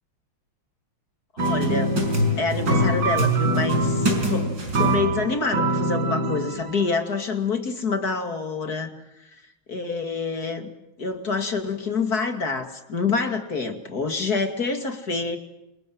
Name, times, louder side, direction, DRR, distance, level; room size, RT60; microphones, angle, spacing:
voice 1, 1.3-2.0 2.4-8.9 9.2-9.3 9.7-10.7 11.0-15.4, left 4 dB, 45° left, 6 dB, 2.9 m, -27 dB
sound 1, 1.4-6.9, right 1 dB, 55° right, 6.4 m, -23 dB
28.0 x 27.0 x 7.8 m, 0.87 s
omnidirectional pair, 2.3 m